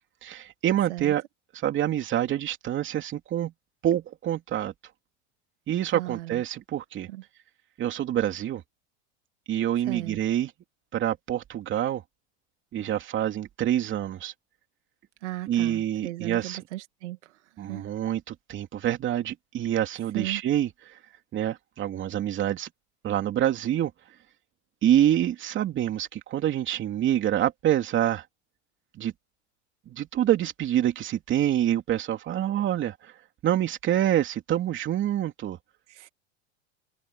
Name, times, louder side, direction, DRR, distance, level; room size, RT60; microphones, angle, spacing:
voice 1, 0.2-1.2 1.6-3.5 3.8-4.7 5.7-7.1 7.8-8.6 9.5-10.5 10.9-12.0 12.7-14.3 15.5-16.6 17.6-20.7 21.3-22.7 23.0-23.9 24.8-28.2 28.9-29.1 29.9-33.1 33.4-35.6, right 11 dB, 35° right, 3.0 m, -26 dB
voice 2, 5.9-6.4 7.1-7.2 9.8-10.2 15.2-17.4 17.7-17.9 20.1-20.4 35.9-36.1, right 17 dB, 85° right, 2.0 m, -36 dB
supercardioid pair, 125°, 35 cm